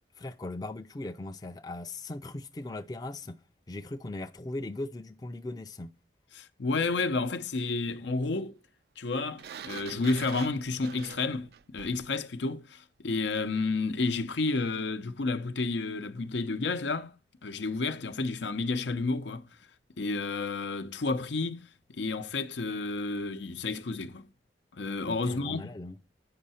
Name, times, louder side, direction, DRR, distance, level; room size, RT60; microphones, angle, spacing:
voice 1, 0.2-3.4 3.7-5.9 25.1-26.0, left 2 dB, 20° left, 0.4 m, -39 dB
voice 2, 6.3-8.5 9.0-17.1 17.4-19.5 20.0-24.2 24.7-25.7, left 3 dB, 90° left, 0.7 m, -31 dB
Sliding door, 9.4-12.1, right 7 dB, 60° right, 0.3 m, -44 dB
8.5 x 5.5 x 4.2 m
head